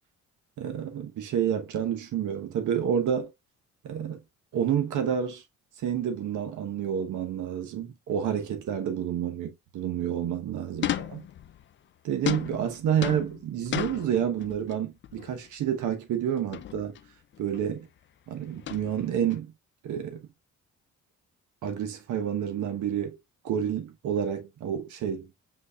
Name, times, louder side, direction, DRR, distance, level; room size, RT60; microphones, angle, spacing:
voice 1, 0.6-3.3 3.8-4.2 4.5-5.4 5.8-11.2 12.0-17.0 17.4-17.9 18.3-19.5 19.8-20.3 21.6-23.2 23.4-25.3, right 9 dB, 75° right, 1.1 m, -29 dB
sound 1, 10.8-11.7 12.3-14.8 15.0-15.4 16.5-17.1 17.3-17.7 18.6-19.4, left 11 dB, 40° left, 0.4 m, -34 dB
6.1 x 3.3 x 2.3 m
cardioid pair, 90°, 30 cm